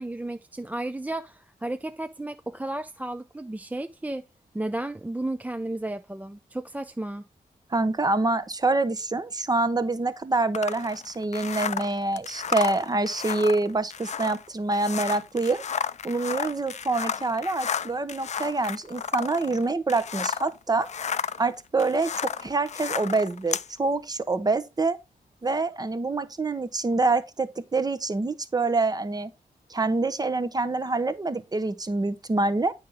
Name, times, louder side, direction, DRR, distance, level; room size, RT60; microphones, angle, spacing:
voice 1, 0.0-4.2 4.5-7.2, right 1 dB, 10° right, 0.4 m, -33 dB
voice 2, 7.7-15.6 16.0-20.9 21.4-25.0 25.4-29.3 29.7-32.7, right 3 dB, 25° right, 0.9 m, -26 dB
sound 1, 10.5-20.5 20.8-23.7, left 7 dB, 50° left, 0.4 m, -32 dB
9.3 x 5.6 x 3.6 m
wide cardioid pair, 115°, 15 cm